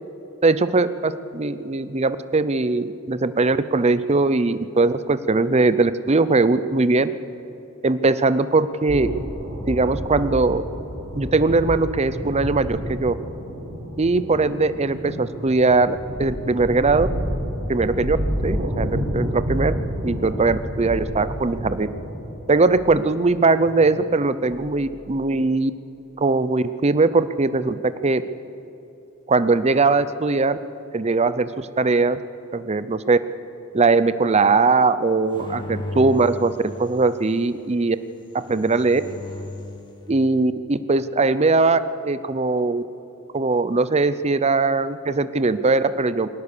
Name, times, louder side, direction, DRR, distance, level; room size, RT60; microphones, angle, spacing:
voice 1, 0.4-7.1 7.8-9.2 9.7-10.6 11.1-13.1 14.0-17.1 17.7-18.2 18.4-19.7 20.0-21.9 22.5-25.7 26.2-28.2 29.3-30.6 30.9-32.2 32.5-33.2 33.7-38.0 38.5-39.0 40.1-42.8 43.3-46.3, right 3 dB, 30° right, 14 dB, 0.6 m, -20 dB
sound 1, 8.9-25.0, equal, 65° right, 5.0 m, -30 dB
sound 2, 35.3-37.3 38.3-39.8, left 2 dB, 20° left, 2.3 m, -35 dB
21.5 x 18.0 x 6.8 m, 2.9 s
head